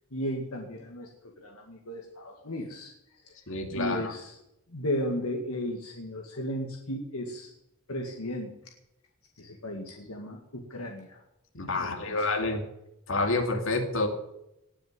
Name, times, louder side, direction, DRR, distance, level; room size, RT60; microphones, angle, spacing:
voice 1, 0.1-1.1 1.4-2.9 3.7-4.4 4.7-7.5 7.9-8.5 9.4-11.2 11.7-12.3, left 1 dB, 80° left, 2 dB, 2.1 m, -35 dB
voice 2, 3.5-4.1 11.5-12.6 13.1-14.1, left 2 dB, 65° left, 4 dB, 2.6 m, -28 dB
19.0 x 6.6 x 9.6 m, 0.85 s
head